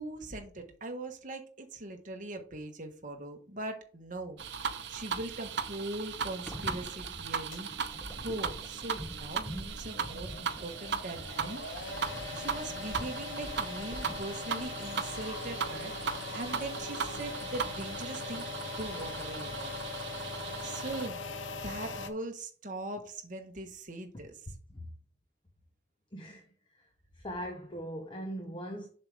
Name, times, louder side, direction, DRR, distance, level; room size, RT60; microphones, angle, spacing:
voice 1, 0.0-4.4 4.9-7.7 8.1-11.7 12.3-18.5 18.8-19.7 20.6-21.2 21.5-24.4, right 2 dB, 40° right, 1.2 m, -41 dB
sound 1, 4.4-21.1, right 6 dB, 65° right, 0.8 m, -38 dB
sound 2, 6.2-14.6, equal, 5° left, 1.1 m, -45 dB
sound 3, 7.5-22.1, left 3 dB, 80° left, 0.9 m, -41 dB
voice 2, 26.1-26.4 26.7-26.9 27.1-28.9, equal, 25° left, 0.9 m, -40 dB
7.3 x 6.3 x 3.4 m
head